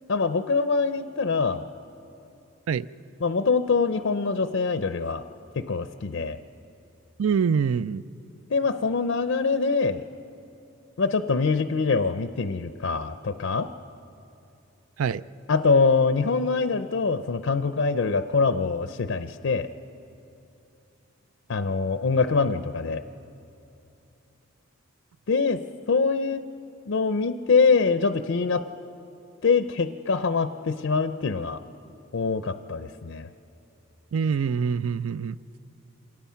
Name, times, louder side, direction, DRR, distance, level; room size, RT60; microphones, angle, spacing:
voice 1, 0.1-1.6 3.2-5.2 5.6-6.4 8.5-10.0 11.0-13.7 15.5-19.7 21.5-23.0 25.3-25.6 25.9-26.4 26.9-28.6 29.4-31.6 32.1-33.3, left 4 dB, 60° left, 10 dB, 0.5 m, -24 dB
voice 2, 7.2-8.0 15.0-15.2 34.1-35.4, right 6 dB, 80° right, 17 dB, 0.4 m, -25 dB
26.5 x 18.0 x 5.7 m, 2.7 s
head